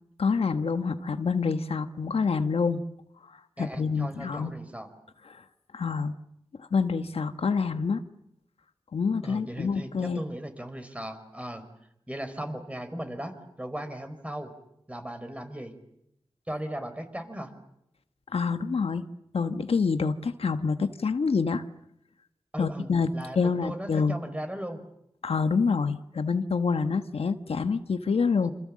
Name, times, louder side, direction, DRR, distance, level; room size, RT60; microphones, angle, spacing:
voice 1, 0.2-2.8 3.6-4.5 5.3-5.4 5.7-6.1 6.6-8.0 8.9-10.2 18.3-19.0 19.3-21.6 22.6-23.1 23.3-24.1 25.2-28.5, left 5 dB, 90° left, 9 dB, 1.2 m, -27 dB
voice 2, 3.6-4.9 9.2-11.6 12.1-13.3 13.6-14.5 14.9-15.7 16.5-17.5 22.5-24.8, right 1 dB, 15° right, 8 dB, 4.6 m, -37 dB
28.5 x 26.5 x 7.5 m, 0.79 s
wide cardioid pair, 70°, 10 cm